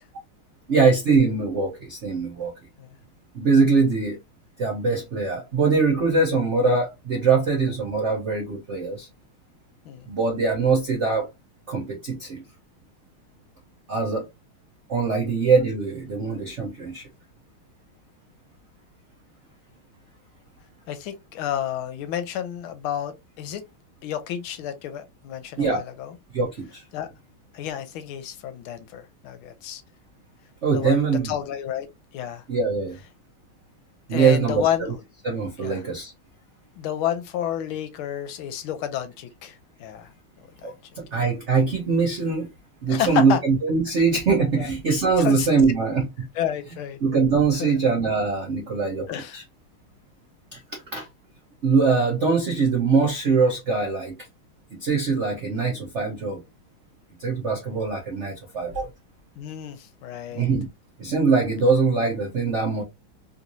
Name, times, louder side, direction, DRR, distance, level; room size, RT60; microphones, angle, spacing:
voice 1, 0.7-2.5 3.3-4.2 4.6-9.1 10.1-11.3 11.7-12.4 13.9-14.2 14.9-17.0 25.6-25.8 26.3-26.8 30.6-31.3 32.5-33.0 34.1-34.9 35.2-36.1 40.6-42.5 42.8-46.3 47.0-49.4 50.5-51.1 51.6-54.2 54.7-56.4 57.2-58.9 60.3-60.7 61.0-62.8, right 4 dB, 80° right, 0.6 m, -22 dB
voice 2, 20.9-23.6 24.0-26.1 26.9-27.1 27.5-29.8 30.7-31.9 32.1-32.4 34.1-34.9 35.6-35.8 36.8-40.1 42.9-43.4 44.6-44.7 45.2-45.5 46.3-47.0 47.6-47.7 49.1-49.4 59.4-60.4, left 10 dB, 80° left, 1.5 m, -30 dB
3.5 x 3.0 x 2.6 m
omnidirectional pair, 2.3 m